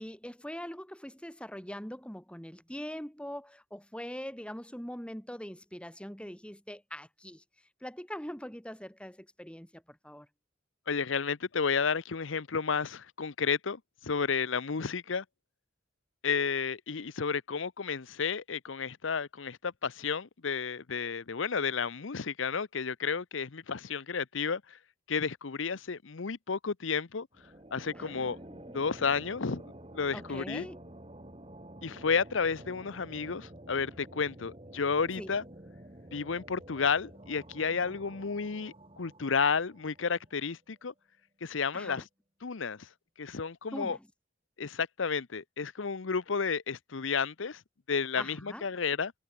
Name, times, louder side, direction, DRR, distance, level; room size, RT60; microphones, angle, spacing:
voice 1, 0.0-7.4 7.8-10.3 28.0-28.7 30.1-30.8 35.2-35.3 41.7-42.0 43.7-44.1 48.2-48.7, equal, 5° left, 3.7 m, -42 dB
voice 2, 10.9-15.2 16.2-24.8 25.1-27.3 27.7-28.4 28.7-29.6 29.9-30.7 31.8-35.4 36.1-40.9 41.4-42.0 42.4-42.9 43.2-44.0 44.6-47.6 47.9-49.1, left 5 dB, 80° left, 0.8 m, -32 dB
sound 1, 27.3-40.5, right 1 dB, 30° right, 3.0 m, -50 dB
head